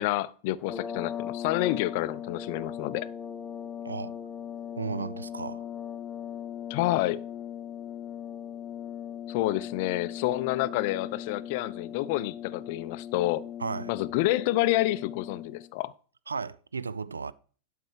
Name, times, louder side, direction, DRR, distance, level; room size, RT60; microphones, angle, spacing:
voice 1, 0.0-3.1 6.7-7.2 9.3-13.4 13.9-15.9, left 16 dB, 50° left, 0.4 m, -28 dB
sound 1, 0.6-15.7, left 9 dB, 15° left, 0.9 m, -39 dB
voice 2, 3.8-4.1 4.8-5.7 13.6-13.9 16.3-17.3, right 5 dB, 75° right, 0.3 m, -34 dB
11.5 x 4.6 x 4.8 m
figure-of-eight pair, 90°, 0 cm